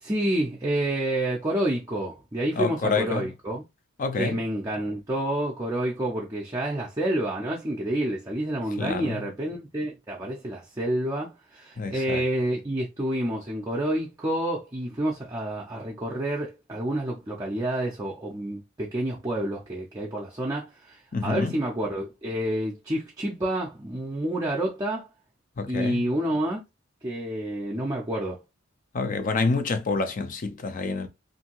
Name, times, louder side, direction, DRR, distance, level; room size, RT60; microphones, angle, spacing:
voice 1, 0.0-3.6 4.2-25.1 25.7-26.6 27.0-28.4, right 1 dB, 15° right, 0.5 m, -29 dB
voice 2, 2.5-3.3 4.0-4.4 8.8-9.2 11.8-12.2 21.1-21.6 25.6-26.1 28.9-31.1, left 4 dB, 40° left, 0.5 m, -27 dB
2.7 x 2.6 x 2.9 m
head